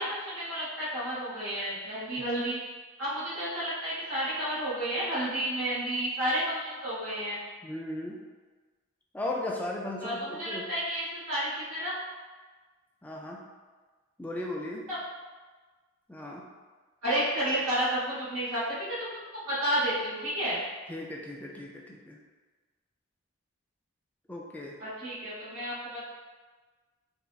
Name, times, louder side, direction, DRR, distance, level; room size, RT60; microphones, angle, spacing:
voice 1, 0.0-2.6 3.0-7.4 10.0-12.0 14.9-15.0 17.0-20.6 24.8-26.0, right 1 dB, 90° right, -9 dB, 1.1 m, -31 dB
voice 2, 7.6-8.2 9.1-10.6 13.0-13.5 14.2-14.9 16.1-16.5 20.9-22.2 24.3-24.7, left 1 dB, 10° left, -2 dB, 0.3 m, -36 dB
3.5 x 2.0 x 2.4 m, 1.4 s
head